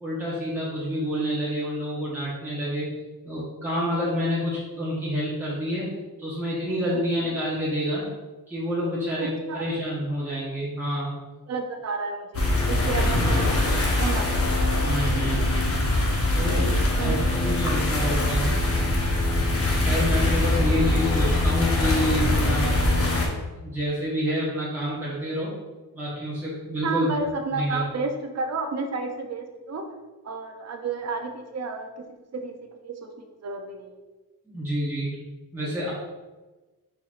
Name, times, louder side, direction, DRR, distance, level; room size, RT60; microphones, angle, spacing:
voice 1, 0.0-2.9 3.2-5.9 6.2-8.0 8.5-11.1 14.8-15.7 16.3-16.7 17.0-17.2 17.4-18.6 19.8-22.8 23.6-25.5 25.9-27.1 27.5-27.8 34.4-35.1 35.5-35.9, equal, 5° right, -9 dB, 1.0 m, -28 dB
voice 2, 9.2-9.6 11.5-14.3 17.0-17.2 19.9-20.1 26.8-29.9 30.2-32.6 32.8-34.0, right 4 dB, 45° right, 4 dB, 0.6 m, -31 dB
sound 1, 12.3-23.3, left 2 dB, 40° left, 0.8 m, -23 dB
4.6 x 3.9 x 2.5 m, 1.2 s
wide cardioid pair, 145°, 37 cm